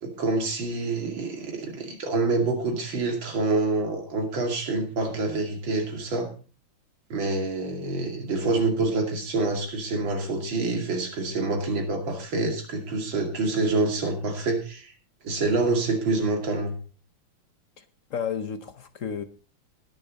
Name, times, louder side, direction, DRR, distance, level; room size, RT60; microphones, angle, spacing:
voice 1, 0.0-6.3 7.1-14.9 15.2-16.8, right 3 dB, 65° right, 3.2 m, -27 dB
voice 2, 18.1-19.2, left 7 dB, 60° left, 0.8 m, -32 dB
19.5 x 7.0 x 4.1 m
omnidirectional pair, 2.3 m